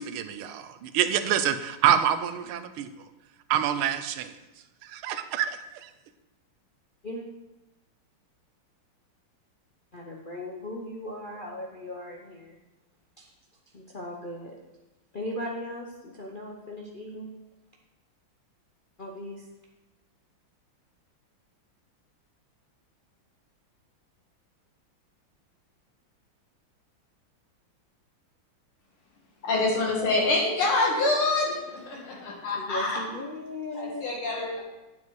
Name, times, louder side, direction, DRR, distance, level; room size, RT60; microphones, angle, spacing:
voice 1, 0.0-3.1 3.5-4.4 4.8-5.9, right 9 dB, 80° right, 11 dB, 1.5 m, -27 dB
voice 2, 9.9-12.6 13.2-13.3 13.7-14.5 15.1-17.3 19.0-19.4 32.5-34.2, left 1 dB, 55° left, -2 dB, 0.5 m, -37 dB
voice 3, 29.4-33.0 33.7-34.6, left 2 dB, 80° left, -2 dB, 2.8 m, -26 dB
9.4 x 7.5 x 4.7 m, 1.1 s
omnidirectional pair, 2.3 m